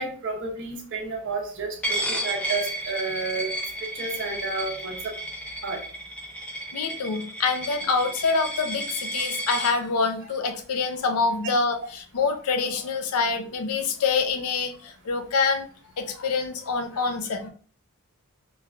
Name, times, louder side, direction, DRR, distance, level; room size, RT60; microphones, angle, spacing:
voice 1, 0.0-3.5 4.0-5.1 5.6-5.8, right 3 dB, 55° right, 2 dB, 0.7 m, -31 dB
Coin (dropping), 1.8-9.7, right 1 dB, 5° left, 0.3 m, -32 dB
voice 2, 6.7-15.6 16.0-17.5, left 4 dB, 80° left, 7 dB, 0.5 m, -26 dB
3.1 x 2.2 x 2.4 m, 0.42 s
head